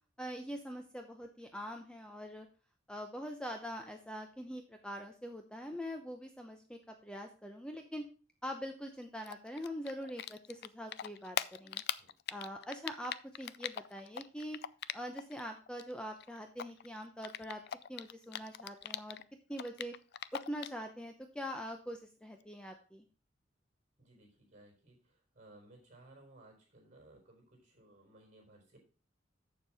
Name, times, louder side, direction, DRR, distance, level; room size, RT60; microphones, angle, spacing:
voice 1, 0.2-2.5 2.9-8.1 8.4-11.8 12.3-14.6 14.9-17.6 17.9-19.2 19.5-19.9 20.3-23.0, equal, 5° left, 4 dB, 0.7 m, -43 dB
Typing, 9.2-10.7 10.9-15.4 15.7-19.2 19.5-20.8, left 10 dB, 55° left, 0.4 m, -40 dB
voice 2, 24.0-25.0 25.3-28.8, right 2 dB, 40° right, 1 dB, 4.1 m, -59 dB
7.4 x 7.0 x 4.8 m, 0.36 s
head